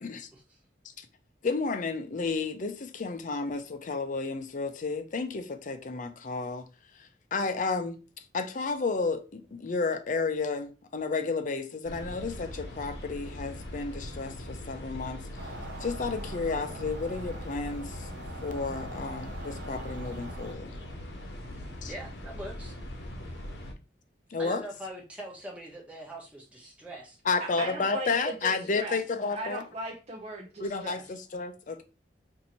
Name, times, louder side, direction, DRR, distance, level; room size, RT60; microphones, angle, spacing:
voice 1, 1.4-6.7 7.0-8.0 8.3-15.2 15.8-18.1 18.4-20.7 21.8-21.9 24.3-24.6 27.3-29.6 30.6-31.8, left 4 dB, 45° left, 0.5 m, -32 dB
sound 1, 11.8-23.7, left 1 dB, 70° left, 0.9 m, -41 dB
sound 2, 15.4-20.5, right 1 dB, 85° right, 0.8 m, -43 dB
voice 2, 21.9-22.8 24.4-27.8, right 1 dB, 5° right, 0.9 m, -43 dB
voice 3, 27.6-29.0 29.3-31.0, right 2 dB, 40° right, 0.6 m, -38 dB
2.8 x 2.6 x 4.2 m
head